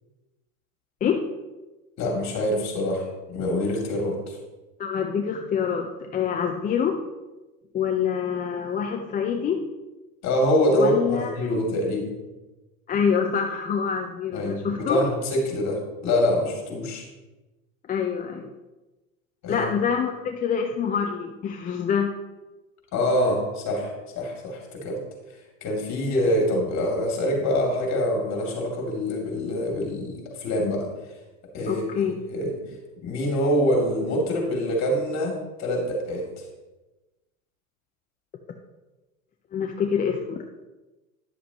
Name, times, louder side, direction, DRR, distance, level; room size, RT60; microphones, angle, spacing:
voice 1, 2.0-4.4 10.2-12.1 14.3-17.0 19.4-19.6 22.9-25.0 25.6-30.9 31.5-32.5 33.0-36.5, left 1 dB, 40° left, 0 dB, 2.9 m, -25 dB
voice 2, 4.8-7.0 7.7-9.7 10.7-11.6 12.9-15.0 17.9-18.5 19.5-22.1 31.7-32.2 39.5-40.4, left 7 dB, 20° left, 3 dB, 0.5 m, -26 dB
10.5 x 7.1 x 3.0 m, 1.1 s
hypercardioid pair, 100°, 42 cm